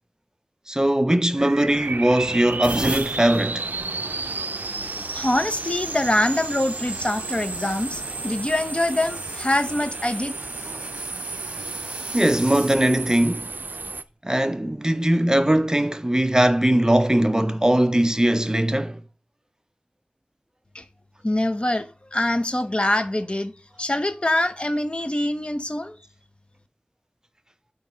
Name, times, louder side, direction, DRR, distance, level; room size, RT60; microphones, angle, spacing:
voice 1, 0.7-3.7 10.7-10.8 12.1-13.5 14.2-19.0, right 1 dB, 20° right, 0.5 m, -20 dB
sound 1, 1.4-14.0, right 3 dB, 85° right, 0.3 m, -32 dB
sound 2, 1.6-2.0 2.5-12.8 13.6-13.9 15.4-15.6, right 1 dB, 35° right, 1.3 m, -39 dB
voice 2, 5.1-10.4 20.7-20.8 21.2-23.5 23.8-25.9, left 1 dB, 35° left, 0.7 m, -24 dB
8.8 x 3.0 x 5.5 m
wide cardioid pair, 45°, 3 cm